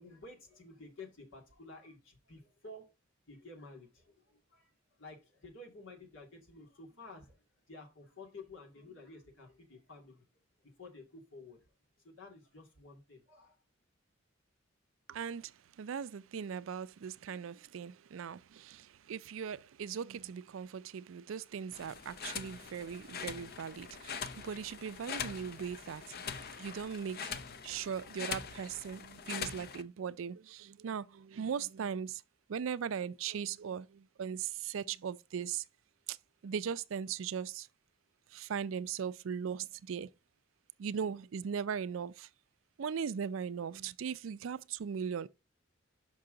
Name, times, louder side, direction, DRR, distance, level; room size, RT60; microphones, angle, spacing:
voice 1, 0.0-2.8 3.3-4.7 5.0-7.4 7.7-10.2 10.8-11.6 12.0-13.6, left 2 dB, 75° left, 2.3 m, -52 dB
voice 2, 15.1-32.2 32.5-35.6 36.1-36.2 36.4-37.7 38.3-40.1 40.8-42.3 42.8-45.3, right 7 dB, 80° right, 0.4 m, -39 dB
sound 1, 21.7-29.8, left 6 dB, 50° left, 0.6 m, -43 dB
6.0 x 5.6 x 3.8 m
head